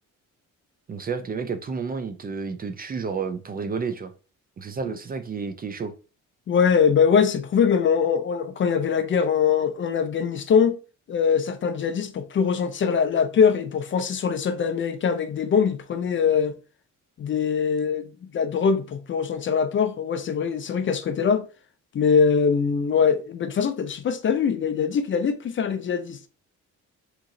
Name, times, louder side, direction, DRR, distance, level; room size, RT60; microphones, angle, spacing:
voice 1, 0.9-4.1 4.6-5.9, right 5 dB, 30° right, 0.3 m, -31 dB
voice 2, 6.5-10.8 11.1-16.6 17.2-21.5 21.9-26.3, left 6 dB, 40° left, 0.4 m, -22 dB
3.6 x 3.0 x 2.6 m
cardioid pair, 110°, 32 cm